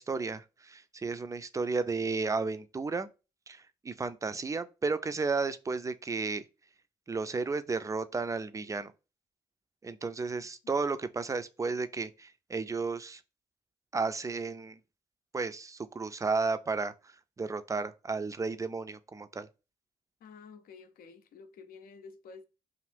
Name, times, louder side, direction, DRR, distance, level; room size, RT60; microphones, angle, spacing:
voice 1, 0.0-3.1 3.5-6.4 7.1-8.9 9.8-13.2 13.9-14.8 15.3-19.5, right 4 dB, 20° right, 0.4 m, -33 dB
voice 2, 20.2-22.5, left 5 dB, 65° left, 0.5 m, -51 dB
2.5 x 2.5 x 3.3 m
hypercardioid pair, 40°, 16 cm